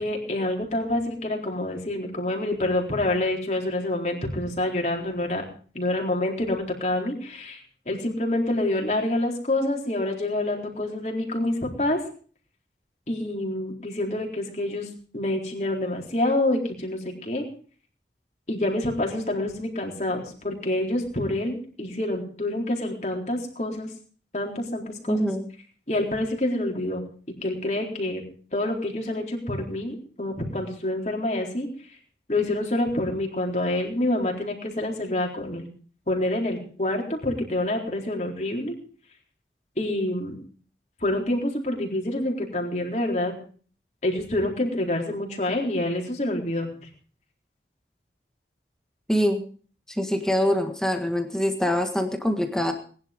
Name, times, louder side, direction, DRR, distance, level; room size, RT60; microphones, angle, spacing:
voice 1, 0.0-5.4 5.7-12.0 13.1-17.5 18.5-23.9 24.3-25.3 25.9-27.0 27.4-28.2 28.5-31.7 32.3-35.7 36.1-38.8 39.8-40.4 41.0-43.3 44.0-46.7, left 1 dB, 40° left, 1 dB, 4.0 m, -27 dB
voice 2, 25.1-25.5 49.1-49.4 49.9-52.7, equal, 5° left, 4 dB, 1.6 m, -24 dB
20.5 x 11.0 x 5.2 m, 0.42 s
head